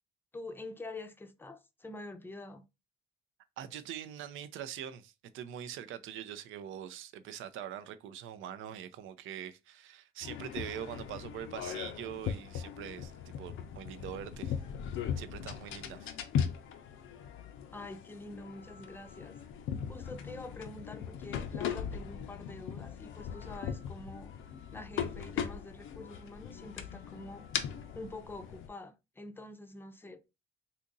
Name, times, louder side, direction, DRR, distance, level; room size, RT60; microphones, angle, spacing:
voice 1, 0.3-2.6 17.7-19.4 19.9-24.3 24.7-27.5 27.9-30.3, left 2 dB, 10° left, 0.5 m, -46 dB
voice 2, 3.6-13.1 13.4-14.6 15.2-16.2, right 10 dB, 85° right, 0.5 m, -43 dB
sound 1, 10.2-28.7, left 8 dB, 85° left, 0.5 m, -39 dB
2.8 x 2.5 x 3.8 m
cardioid pair, 90°, 20 cm